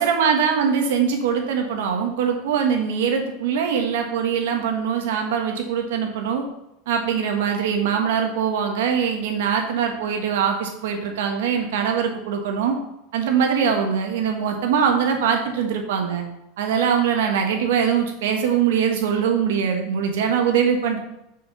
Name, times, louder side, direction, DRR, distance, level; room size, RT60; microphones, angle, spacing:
voice 1, 0.0-6.4 6.9-12.8 13.1-16.2 16.6-21.0, right 7 dB, 75° right, 3 dB, 1.7 m, -22 dB
6.3 x 5.6 x 5.7 m, 0.85 s
supercardioid pair, 175°, 0 cm